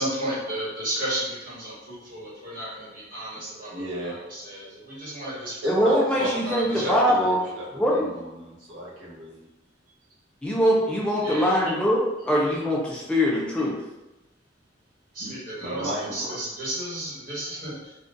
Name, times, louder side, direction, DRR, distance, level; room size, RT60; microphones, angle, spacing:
voice 1, 0.0-5.6 6.2-7.0 11.2-11.7 13.1-13.2 15.1-17.9, right 1 dB, 50° right, -7 dB, 1.3 m, -33 dB
voice 2, 3.7-4.2 5.6-6.4 6.6-9.5 15.2-16.4, right 1 dB, 75° right, -7 dB, 1.0 m, -34 dB
voice 3, 5.6-7.4 7.8-8.1 10.4-13.8, equal, 5° left, -5 dB, 0.4 m, -22 dB
3.6 x 2.3 x 2.6 m, 0.99 s
head